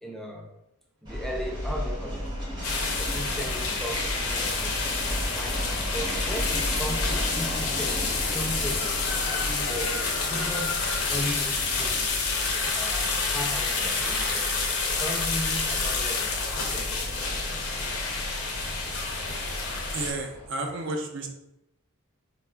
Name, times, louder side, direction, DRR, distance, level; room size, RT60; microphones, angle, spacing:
voice 1, 0.0-0.5 1.0-2.3 3.0-5.6 5.9-9.0 9.3-12.2 12.7-14.6 14.9-17.4, equal, ahead, 0 dB, 0.3 m, -37 dB
sound 1, 1.1-20.5, equal, 20° right, 0.8 m, -35 dB
sound 2, 2.6-20.1, left 4 dB, 80° left, 0.5 m, -29 dB
sound 3, 9.9-15.5, right 2 dB, 85° right, 0.8 m, -49 dB
voice 2, 19.9-21.3, right 2 dB, 55° right, 3 dB, 0.5 m, -31 dB
4.1 x 2.3 x 2.2 m, 0.87 s
head